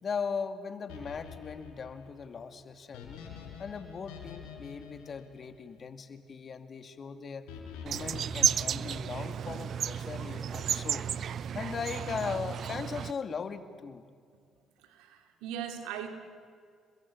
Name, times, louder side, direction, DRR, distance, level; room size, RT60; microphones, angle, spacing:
voice 1, 0.0-3.2 3.6-7.5 7.8-11.1 11.5-14.0, left 5 dB, 50° left, 10 dB, 2.4 m, -38 dB
sound 1, 0.9-6.2 7.5-9.4, left 7 dB, 80° left, 4.7 m, -48 dB
sound 2, 7.9-13.1, right 8 dB, 60° right, 0.6 m, -32 dB
voice 2, 14.8-16.1, right 9 dB, 80° right, 7 dB, 2.9 m, -39 dB
30.0 x 22.0 x 8.6 m, 2.2 s
hypercardioid pair, 55°, 0 cm